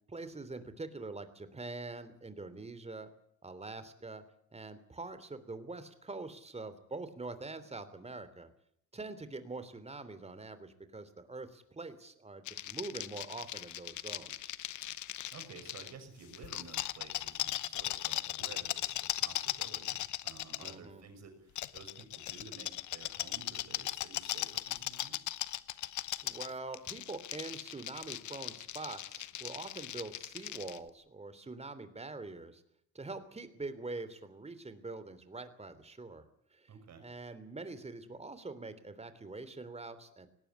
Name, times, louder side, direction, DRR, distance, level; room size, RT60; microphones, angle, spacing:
voice 1, 0.1-3.1 3.4-4.2 4.5-8.5 8.9-14.6 20.6-21.0 26.2-32.6 32.9-36.2 36.5-36.7 37.0-40.3, right 3 dB, 20° right, 12 dB, 3.2 m, -44 dB
sound 1, 12.5-15.9 16.3-20.7 21.6-30.8, left 14 dB, 75° left, 0.9 m, -38 dB
voice 2, 14.7-25.3 36.7-37.0, right 5 dB, 60° right, 6 dB, 6.0 m, -53 dB
19.0 x 17.5 x 9.9 m, 0.67 s
cardioid pair, 90°, 30 cm